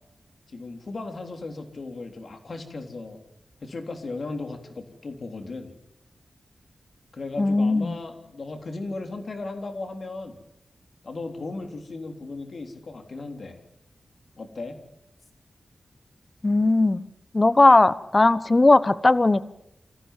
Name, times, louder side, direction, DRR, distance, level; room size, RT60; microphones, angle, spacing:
voice 1, 0.5-3.2 3.6-5.7 7.1-10.4 11.0-13.6 14.4-14.8, left 3 dB, 60° left, 4 dB, 3.6 m, -36 dB
voice 2, 7.4-7.9 16.4-17.0 17.3-19.4, left 2 dB, 30° left, 15 dB, 0.9 m, -18 dB
27.0 x 15.0 x 7.5 m, 0.84 s
wide cardioid pair, 90°, 0 cm